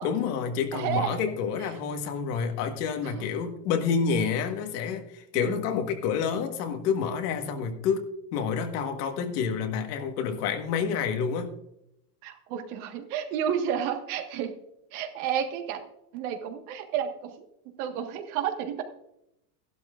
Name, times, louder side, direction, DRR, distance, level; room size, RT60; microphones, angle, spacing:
voice 1, 0.0-11.5, left 6 dB, 75° left, 6 dB, 1.6 m, -28 dB
voice 2, 0.7-1.2 3.0-3.2 5.3-5.6 12.2-14.5 14.9-15.8 16.1-17.5 17.8-18.8, right 9 dB, 65° right, 5 dB, 1.7 m, -31 dB
14.5 x 12.0 x 2.5 m, 0.82 s
supercardioid pair, 145°, 47 cm